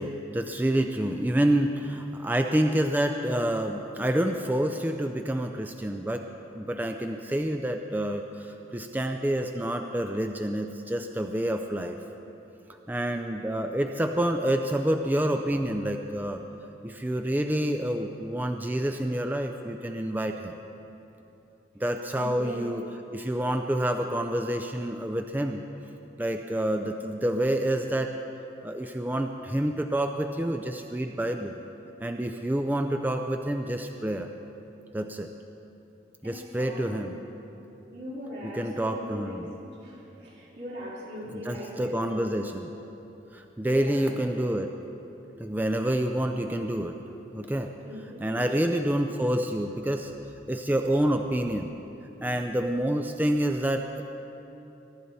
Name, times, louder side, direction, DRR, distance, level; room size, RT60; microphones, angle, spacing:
voice 1, 0.0-6.2 6.6-12.0 12.9-16.4 16.8-20.5 21.8-22.8 23.1-25.6 26.2-28.1 28.6-31.5 32.0-34.3 34.9-35.3 36.2-37.1 38.4-39.5 41.3-42.7 43.3-44.7 45.4-47.0 47.3-47.7 48.2-50.1 50.5-51.7 52.2-54.0, right 1 dB, 10° right, 5 dB, 0.4 m, -28 dB
voice 2, 22.1-22.7 36.2-37.3 37.9-42.3 43.6-44.3 47.8-48.7, equal, 75° right, -7 dB, 4.2 m, -40 dB
22.0 x 11.5 x 4.1 m, 3.0 s
head